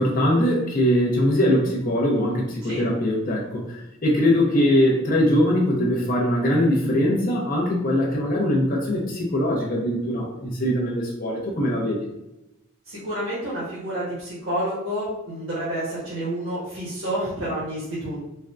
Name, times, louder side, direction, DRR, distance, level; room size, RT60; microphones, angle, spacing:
voice 1, 0.0-12.1, left 1 dB, 45° left, -2 dB, 0.7 m, -22 dB
voice 2, 12.9-18.2, right 1 dB, 80° right, -9 dB, 1.1 m, -29 dB
4.3 x 2.2 x 2.5 m, 0.90 s
head